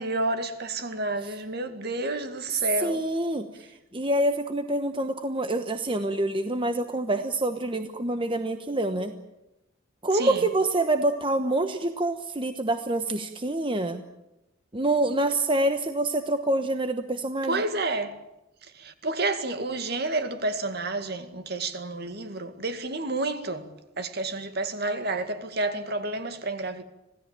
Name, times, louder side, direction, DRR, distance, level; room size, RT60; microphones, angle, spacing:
voice 1, 0.0-3.0 10.1-10.5 17.5-18.2 18.7-23.7 24.0-26.8, right 2 dB, 50° right, 2.1 m, -30 dB
voice 2, 2.8-3.5 3.9-9.1 10.0-14.0 14.7-17.6, right 1 dB, 25° right, 1.1 m, -26 dB
26.5 x 16.5 x 8.9 m
head